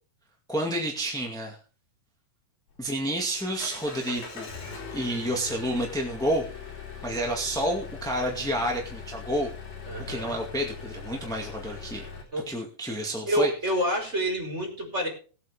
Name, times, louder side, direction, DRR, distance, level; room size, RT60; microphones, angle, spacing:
voice 1, 0.5-1.6 2.8-4.5 4.9-6.5 7.0-9.5 10.1-12.0 12.5-13.5, right 1 dB, ahead, 0 dB, 1.2 m, -29 dB
Engine, 2.7-12.2, left 5 dB, 75° left, 5.7 m, -41 dB
voice 2, 9.9-10.3 12.3-12.5 13.3-15.1, equal, 20° right, 1 dB, 4.9 m, -28 dB
20.5 x 8.4 x 3.6 m, 0.38 s
omnidirectional pair, 4.0 m